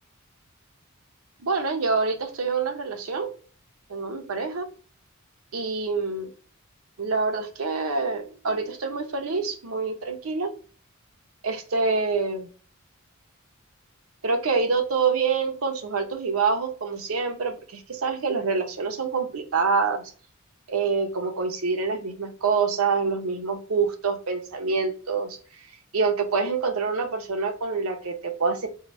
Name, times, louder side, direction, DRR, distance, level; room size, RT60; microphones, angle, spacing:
voice 1, 1.4-3.3 3.9-4.7 5.5-6.3 7.0-10.5 11.4-12.5 14.2-20.0 20.7-25.4 25.9-28.7, right 4 dB, 85° right, 5 dB, 0.7 m, -26 dB
3.8 x 2.0 x 3.9 m, 0.40 s
head